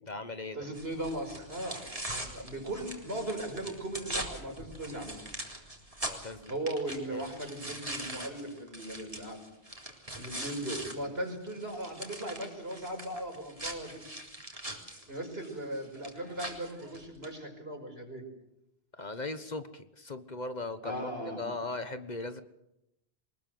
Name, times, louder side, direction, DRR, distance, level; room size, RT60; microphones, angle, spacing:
voice 1, 0.0-0.7 6.0-6.5 7.1-7.3 18.9-21.1 21.4-22.4, left 2 dB, 45° left, 11 dB, 1.4 m, -38 dB
voice 2, 0.5-5.2 6.5-9.4 10.2-14.1 15.1-18.3 20.8-21.5, right 1 dB, 70° right, 4 dB, 5.6 m, -38 dB
sound 1, 0.7-10.9 11.3-17.3, right 1 dB, 35° right, 3.9 m, -42 dB
24.0 x 20.5 x 7.8 m, 0.84 s
omnidirectional pair, 1.1 m